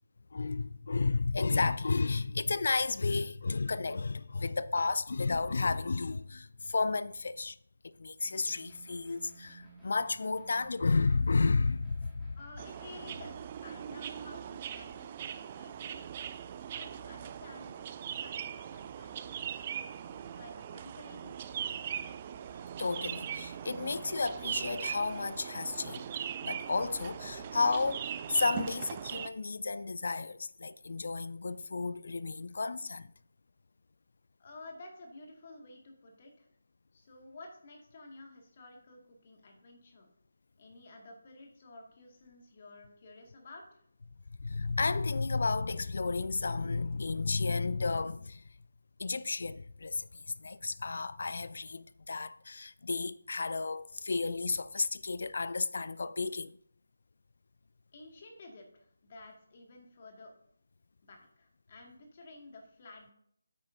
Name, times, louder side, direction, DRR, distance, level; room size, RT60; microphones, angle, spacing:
voice 1, 0.3-7.6 7.8-12.4 22.8-26.1 26.4-33.1 44.4-48.5 49.0-56.6, left 4 dB, 50° left, 0.4 m, -32 dB
sound 1, 8.2-13.3, right 2 dB, ahead, 2.0 m, -55 dB
voice 2, 12.4-16.1 16.7-19.6 20.1-22.1 34.4-36.5 36.9-40.1 40.6-43.8 57.9-60.3 61.0-63.1, left 2 dB, 35° left, 2.0 m, -52 dB
sound 2, 12.6-29.3, right 9 dB, 25° right, 0.4 m, -40 dB
9.2 x 8.9 x 2.7 m
figure-of-eight pair, 155°, 0 cm